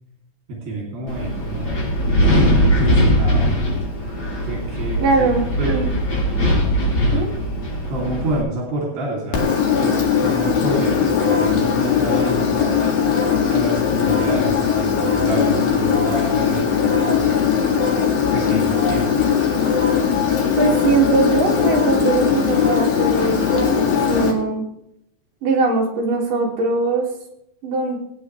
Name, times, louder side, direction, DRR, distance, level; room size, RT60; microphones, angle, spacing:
voice 1, 0.5-2.1 2.4-3.5 4.4-5.8 7.9-9.5 9.8-12.8 13.5-17.3 18.3-19.4, right 2 dB, 80° right, -3 dB, 4.8 m, -28 dB
Wind, 1.1-8.4, equal, 30° left, 4.7 m, -20 dB
voice 2, 5.0-5.9 7.1-7.3 20.5-24.6 25.4-27.1 27.6-28.0, right 3 dB, 60° right, -2 dB, 3.7 m, -21 dB
Engine, 9.3-24.3, left 7 dB, 70° left, 3.6 m, -19 dB
19.5 x 9.4 x 3.2 m, 0.78 s
omnidirectional pair, 4.3 m